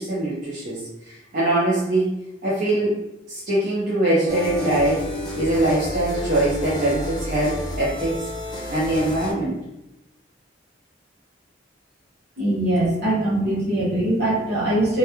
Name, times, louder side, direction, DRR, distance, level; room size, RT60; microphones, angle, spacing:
voice 1, 0.0-2.1 2.4-3.0 3.3-5.0 5.3-8.2 8.7-9.6, right 1 dB, 45° right, -9 dB, 0.6 m, -22 dB
sound 1, 4.3-9.3, left 1 dB, 20° left, 0.5 m, -31 dB
voice 2, 12.4-15.0, right 1 dB, 60° right, -7 dB, 0.9 m, -22 dB
2.3 x 2.2 x 2.8 m, 0.91 s
head